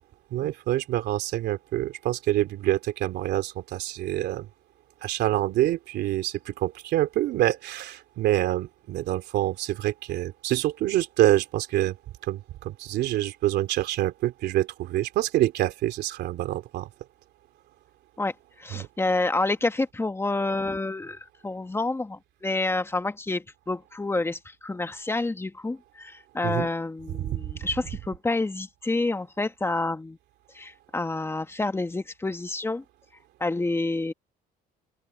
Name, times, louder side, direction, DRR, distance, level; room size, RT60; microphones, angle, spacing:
voice 1, 0.3-4.5 5.0-12.0 12.2-16.9 18.7-18.9 26.4-26.7 27.3-27.4, right 14 dB, 80° right, 3.2 m, -26 dB
voice 2, 18.6-30.2 30.5-32.8 33.4-34.1, left 2 dB, 15° left, 1.4 m, -28 dB
cardioid pair, 110°, 17 cm